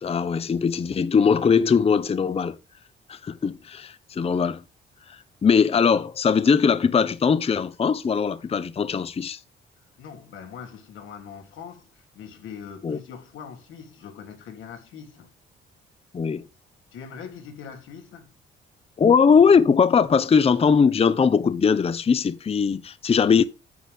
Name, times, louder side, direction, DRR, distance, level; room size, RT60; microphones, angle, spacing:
voice 1, 0.0-2.6 3.1-4.6 5.4-9.4 12.8-13.0 16.1-16.4 19.0-23.4, left 6 dB, 30° left, 0.6 m, -20 dB
voice 2, 9.8-15.3 16.9-18.3, left 7 dB, 85° left, 3.0 m, -42 dB
9.5 x 7.8 x 3.5 m
cardioid pair, 90°, 20 cm